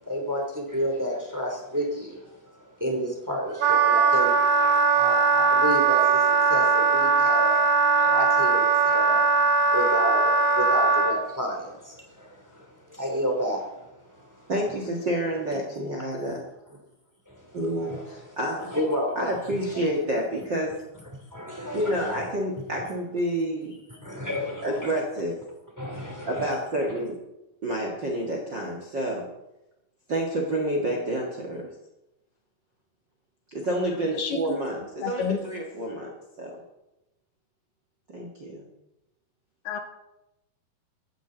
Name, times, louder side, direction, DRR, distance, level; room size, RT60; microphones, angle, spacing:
voice 1, 0.0-14.5 17.3-18.4 18.7-19.3 19.7-19.9 21.3-22.3 24.0-25.0 25.8-26.5, equal, 5° right, 1 dB, 2.2 m, -31 dB
Wind instrument woodwind instrument, 3.6-11.2, right 4 dB, 65° right, 2.0 m, -20 dB
voice 2, 14.5-16.4 17.5-18.8 19.2-20.8 21.7-23.8 24.6-25.4 26.3-27.2 27.6-29.3 30.1-31.7 33.5-36.1 36.4-36.5 38.1-38.7, right 1 dB, 40° right, 0 dB, 1.7 m, -29 dB
voice 3, 35.0-35.4 39.7-39.8, left 7 dB, 70° left, 6 dB, 2.4 m, -28 dB
16.5 x 14.0 x 3.9 m, 0.92 s
omnidirectional pair, 4.5 m